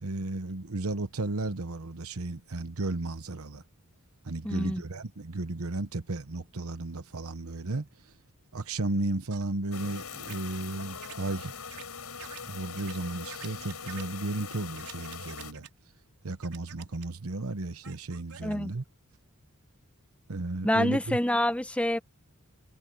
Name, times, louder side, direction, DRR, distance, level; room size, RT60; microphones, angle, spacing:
voice 1, 0.0-3.6 4.2-8.1 8.5-11.5 12.5-15.7 16.2-18.8 20.3-21.2, right 2 dB, 70° right, 1.0 m, -34 dB
voice 2, 4.4-4.8 18.4-18.7 20.6-22.0, left 1 dB, 5° left, 1.0 m, -27 dB
sound 1, 9.3-9.5 10.3-10.4 11.0-11.2 11.7-11.8 12.2-12.4 12.8-12.9 13.3-14.0 14.8-15.7 16.4-17.1 17.8-18.5, right 9 dB, 90° right, 4.7 m, -47 dB
sound 2, 9.7-15.5, left 6 dB, 85° left, 6.6 m, -42 dB
head